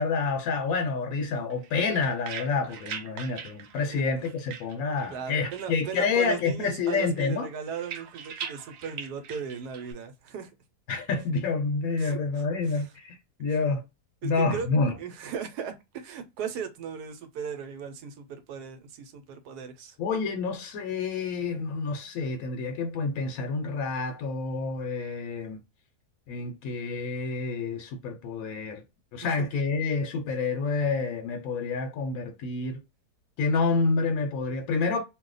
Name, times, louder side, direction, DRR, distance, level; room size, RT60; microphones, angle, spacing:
voice 1, 0.0-7.5 10.9-13.8 14.2-14.9 20.0-25.6 26.3-28.8 29.1-32.8 33.4-35.0, left 4 dB, 70° left, 1.0 m, -28 dB
sound 1, 1.5-5.2 5.5-6.4 6.7-9.9, right 7 dB, 70° right, 0.9 m, -42 dB
voice 2, 5.1-10.5 12.0-12.2 12.7-12.9 13.5-13.6 14.2-14.7 15.0-20.0 29.4-29.5, right 7 dB, 85° right, 1.2 m, -37 dB
2.7 x 2.1 x 3.8 m
omnidirectional pair, 1.7 m